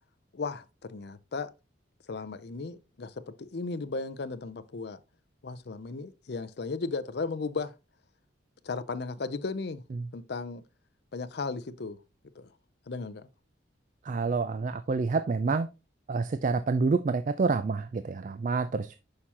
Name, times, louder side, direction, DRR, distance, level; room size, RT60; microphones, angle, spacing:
voice 1, 0.3-1.5 2.1-5.0 5.4-7.7 8.6-9.8 10.1-10.6 11.1-12.0 12.4-12.5 12.9-13.3, left 4 dB, 60° left, 0.5 m, -35 dB
voice 2, 14.1-15.7 16.1-19.0, right 4 dB, 40° right, 0.3 m, -28 dB
6.5 x 5.6 x 2.9 m
head